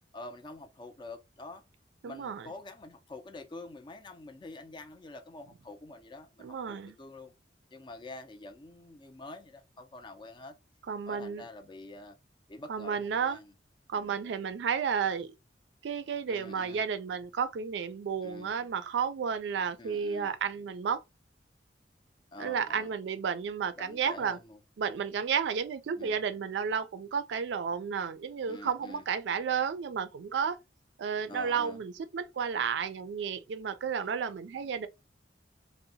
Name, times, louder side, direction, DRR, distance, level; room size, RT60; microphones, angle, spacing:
voice 1, 0.1-1.6 2.0-7.3 7.7-10.6 11.1-12.2 12.5-13.5 14.0-14.2 16.3-16.8 18.2-18.5 19.8-20.3 22.3-22.9 23.8-24.6 26.0-26.2 28.5-29.0 31.3-31.8, left 2 dB, 25° left, 0.4 m, -47 dB
voice 2, 2.0-2.5 6.4-6.9 10.9-11.4 12.7-13.4 13.9-15.3 15.8-21.0 22.4-24.4 24.8-30.6 31.0-34.9, right 6 dB, 75° right, 0.3 m, -32 dB
2.7 x 2.0 x 2.7 m
head